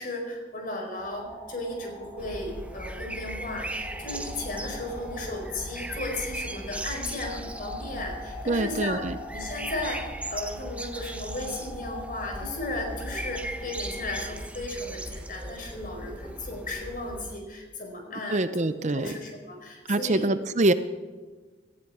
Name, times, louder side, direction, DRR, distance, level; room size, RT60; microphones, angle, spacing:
voice 1, 0.0-9.0 9.3-20.3, left 2 dB, 50° left, 2 dB, 4.7 m, -35 dB
sound 1, 1.0-14.3, left 2 dB, 10° left, 4.7 m, -44 dB
sound 2, 2.2-17.4, right 1 dB, 10° right, 0.8 m, -38 dB
voice 2, 8.5-9.1 18.3-19.2 19.9-20.7, right 2 dB, 40° right, 12 dB, 0.6 m, -25 dB
19.0 x 14.5 x 4.9 m, 1.3 s
head